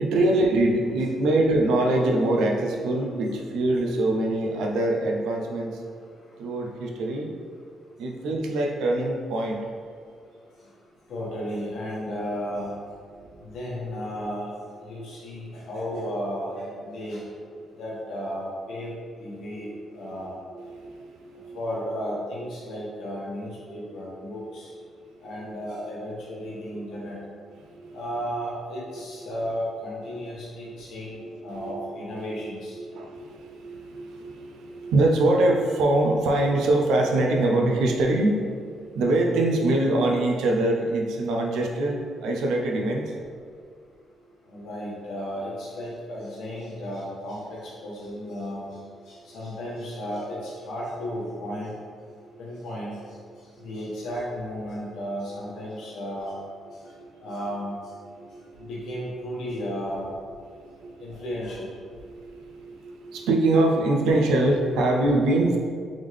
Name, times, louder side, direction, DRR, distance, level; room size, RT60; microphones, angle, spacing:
voice 1, 0.0-5.9 6.4-7.3 8.0-9.7 13.2-13.3 19.4-21.6 24.9-25.3 26.4-28.0 28.9-29.4 30.1-30.3 30.6-30.8 31.2-43.1 52.2-52.4 53.4-53.7 56.8-57.2 58.2-58.7 60.6-61.2 61.9-65.6, right 2 dB, 85° right, 1 dB, 0.5 m, -25 dB
voice 2, 11.1-12.7 13.4-14.5 14.9-17.2 17.8-18.9 19.2-20.3 21.5-24.7 25.2-27.2 27.9-32.7 44.5-47.4 47.8-48.7 49.1-51.7 52.4-52.9 53.6-56.3 57.2-57.7 58.7-60.1 61.0-61.7, equal, 75° left, -6 dB, 1.3 m, -34 dB
3.6 x 3.6 x 3.3 m, 2.1 s
cardioid pair, 90°, 0 cm